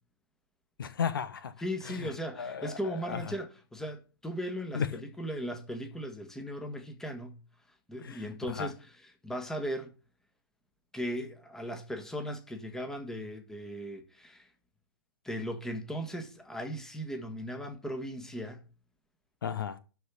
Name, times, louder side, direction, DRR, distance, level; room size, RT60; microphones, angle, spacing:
voice 1, 0.8-1.5 1.9-2.1 2.4-3.2 4.7-5.0 8.0-8.2 8.5-8.7 19.4-19.8, left 7 dB, 60° left, 1.0 m, -34 dB
voice 2, 1.6-7.4 7.9-9.9 10.9-14.5 15.2-18.6, equal, 5° left, 1.6 m, -37 dB
13.0 x 4.5 x 7.0 m
figure-of-eight pair, 115°, 13 cm